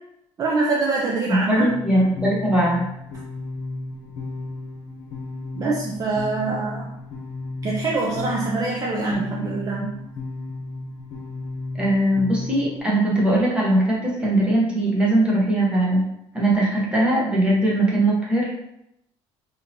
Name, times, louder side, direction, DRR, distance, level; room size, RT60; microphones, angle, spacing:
voice 1, 0.4-1.7 5.6-6.9 7.6-9.9, right 3 dB, 30° right, -2 dB, 0.4 m, -24 dB
voice 2, 1.3-2.9 11.7-16.0 16.3-18.5, right 1 dB, 10° right, -5 dB, 0.9 m, -20 dB
sound 1, 1.7-12.8, left 2 dB, 70° left, 0.8 m, -34 dB
3.6 x 2.8 x 2.8 m, 0.82 s
cardioid pair, 160°, 11 cm